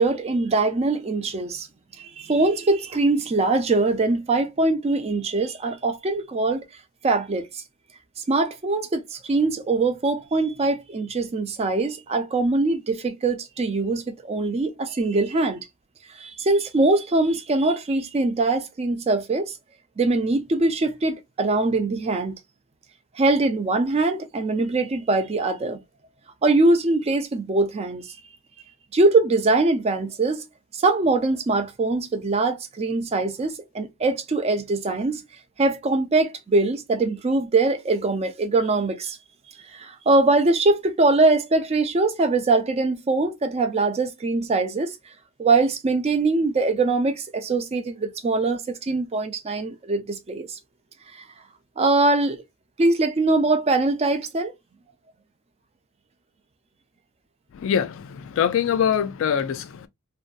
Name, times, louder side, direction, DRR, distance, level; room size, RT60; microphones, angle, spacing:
voice 1, 0.0-1.7 2.0-6.6 7.0-7.6 8.3-15.6 16.2-19.5 20.0-22.3 23.2-25.8 26.4-28.0 28.9-30.4 30.8-35.2 35.6-39.2 39.7-45.0 45.4-50.6 51.1-51.2 51.8-52.4 52.8-54.5, right 3 dB, 30° right, 0.4 m, -22 dB
voice 2, 57.5-59.9, left 8 dB, 60° left, 0.3 m, -24 dB
2.6 x 2.2 x 2.3 m
head